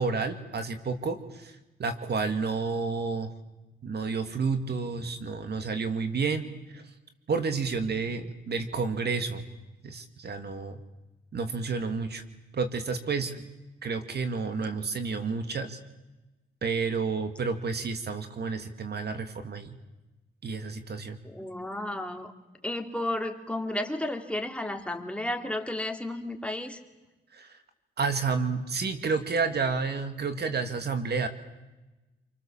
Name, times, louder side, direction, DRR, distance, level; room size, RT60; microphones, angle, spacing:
voice 1, 0.0-3.3 3.8-6.8 7.3-9.4 9.8-10.8 11.3-12.2 12.5-13.5 13.8-15.8 16.6-19.8 20.4-21.2 27.3-27.6 28.0-31.3, right 4 dB, 55° right, 8 dB, 2.2 m, -30 dB
voice 2, 21.2-22.3 22.6-26.8, left 1 dB, 5° left, 4 dB, 2.9 m, -33 dB
28.5 x 24.0 x 7.3 m, 1.1 s
cardioid pair, 75°, 20 cm